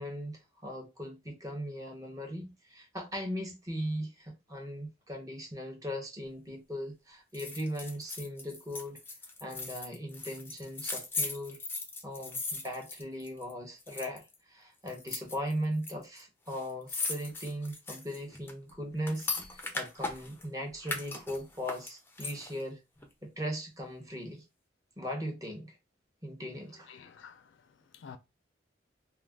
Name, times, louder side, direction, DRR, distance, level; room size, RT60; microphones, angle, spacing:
voice 1, 0.0-9.0 9.4-11.6 12.0-22.8 23.2-24.4 25.0-25.8 26.2-26.9, equal, 20° right, 0.7 m, -38 dB
sound 1, 7.3-13.5 13.8-14.3 14.9-16.2 16.5-20.5 20.8-22.6 23.0-23.1, left 3 dB, 10° left, 0.4 m, -38 dB
voice 2, 26.8-28.2, left 6 dB, 80° left, 0.4 m, -51 dB
2.3 x 2.1 x 3.3 m
head